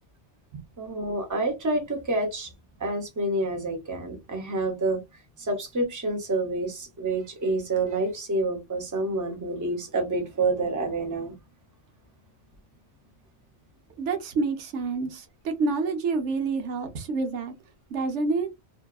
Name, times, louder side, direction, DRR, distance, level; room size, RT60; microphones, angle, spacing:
voice 1, 0.8-2.5 2.8-5.0 5.4-11.3, right 2 dB, 20° right, 0.7 m, -28 dB
voice 2, 14.0-17.5 17.9-18.5, right 4 dB, 90° right, 1.0 m, -28 dB
2.7 x 2.2 x 2.3 m
omnidirectional pair, 1.2 m